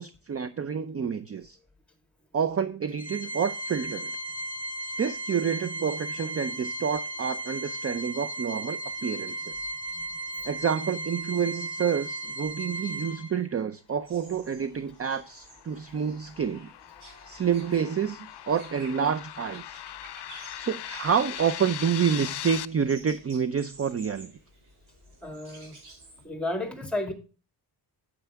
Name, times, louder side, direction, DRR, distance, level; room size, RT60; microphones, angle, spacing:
voice 1, 0.0-1.6 2.3-4.2 5.0-9.7 10.4-16.7 17.3-19.8 20.6-24.3, right 7 dB, 35° right, 0.5 m, -28 dB
Organ, 3.0-13.6, right 1 dB, 20° left, 1.3 m, -35 dB
voice 2, 9.9-10.5 25.2-25.8 26.2-27.1, left 1 dB, 5° left, 1.9 m, -33 dB
sound 1, 14.0-26.2, right 2 dB, 70° right, 5.8 m, -51 dB
sound 2, 14.9-22.6, left 13 dB, 75° left, 0.5 m, -40 dB
9.3 x 7.9 x 3.4 m
wide cardioid pair, 130°, 41 cm